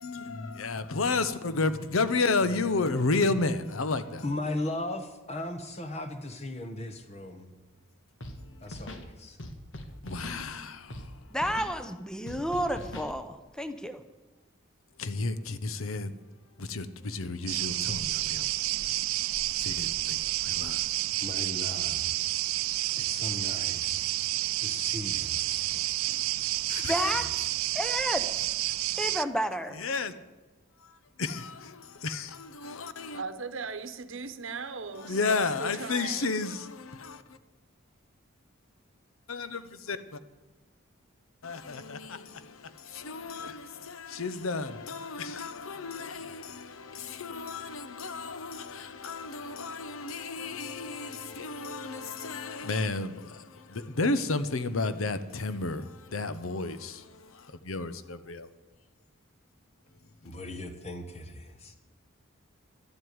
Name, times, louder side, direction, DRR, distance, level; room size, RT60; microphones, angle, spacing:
voice 1, 0.0-4.3 8.4-8.6 10.0-11.2 15.0-16.1 16.6-18.5 19.6-20.2 20.4-21.0 26.7-27.1 29.7-30.1 30.8-33.2 35.0-37.4 39.3-40.2 41.4-58.5 60.2-60.3, left 3 dB, 80° left, 0.8 m, -32 dB
voice 2, 4.2-7.5 8.6-9.4 21.2-22.1 23.0-24.2 24.6-25.9 26.7-27.2 60.2-61.8, left 1 dB, 30° left, 1.2 m, -37 dB
Scratching (performance technique), 8.2-8.4 8.7-9.1 9.4-10.4 10.9-11.1 11.4-11.7 12.3-13.1, left 1 dB, 60° left, 1.4 m, -41 dB
voice 3, 11.3-14.0 26.8-27.5 27.7-28.5 28.9-29.8, equal, 5° left, 0.7 m, -31 dB
sound 1, 17.5-29.2, right 16 dB, 80° right, 0.4 m, -30 dB
voice 4, 33.1-36.3, right 4 dB, 65° right, 1.0 m, -38 dB
12.0 x 7.9 x 9.5 m
head